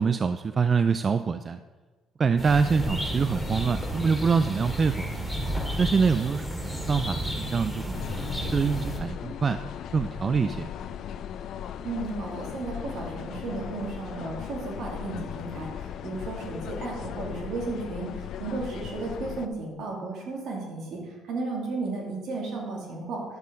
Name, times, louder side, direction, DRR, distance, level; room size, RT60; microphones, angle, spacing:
voice 1, 0.0-1.6 2.2-5.1 5.8-8.0 8.3-9.6 9.9-10.7, right 5 dB, 40° right, 11 dB, 0.3 m, -25 dB
sound 1, 2.4-9.0, equal, ahead, 2.2 m, -32 dB
sound 2, 7.9-19.5, left 9 dB, 65° left, 0.5 m, -37 dB
voice 2, 11.8-18.1 18.4-21.0 21.3-23.2, right 3 dB, 65° right, -1 dB, 2.4 m, -34 dB
10.5 x 7.4 x 3.8 m, 1.3 s
supercardioid pair, 85°, 0 cm